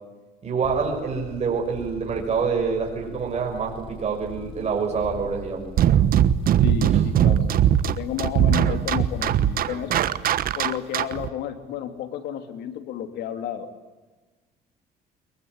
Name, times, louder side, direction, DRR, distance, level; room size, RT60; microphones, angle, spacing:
voice 1, 0.4-5.7, right 5 dB, 40° right, -1 dB, 6.0 m, -26 dB
sound 1, 0.6-9.5, left 4 dB, 35° left, 7.2 m, -41 dB
sound 2, 5.8-11.3, right 10 dB, 60° right, 1.2 m, -20 dB
voice 2, 6.6-9.9 10.6-13.7, left 10 dB, 80° left, 8 dB, 3.1 m, -32 dB
22.5 x 22.5 x 9.7 m, 1.2 s
cardioid pair, 110°, 17 cm